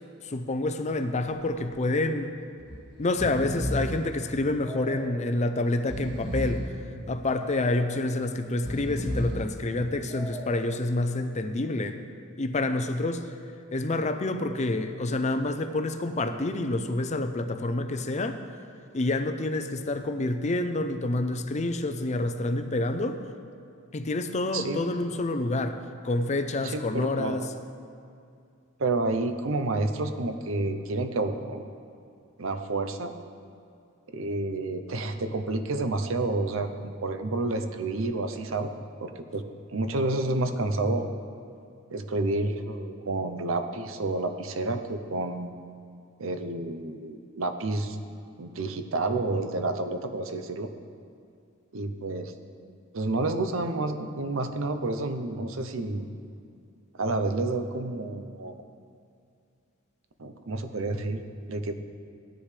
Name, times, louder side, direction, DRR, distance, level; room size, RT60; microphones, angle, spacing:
voice 1, 0.2-2.3 3.0-6.7 7.1-12.0 12.4-13.3 13.7-18.4 18.9-23.2 23.9-27.4, left 2 dB, 35° left, 8 dB, 0.6 m, -28 dB
Breathing, 0.9-1.3 1.6-1.7 2.6-2.8 3.0-4.1 4.6-5.3 5.7-6.8 7.3-8.0 8.5-9.5 10.1-10.7, equal, 25° right, 2.1 m, -33 dB
voice 2, 26.6-27.5 28.8-31.6 32.4-33.1 34.1-38.7 39.0-39.4 39.7-41.1 41.9-45.5 46.2-48.0 48.4-50.7 51.7-52.3 52.9-56.1 56.9-58.6 60.2-61.7, right 2 dB, 65° right, 8 dB, 0.7 m, -29 dB
16.0 x 10.0 x 3.3 m, 2.5 s
head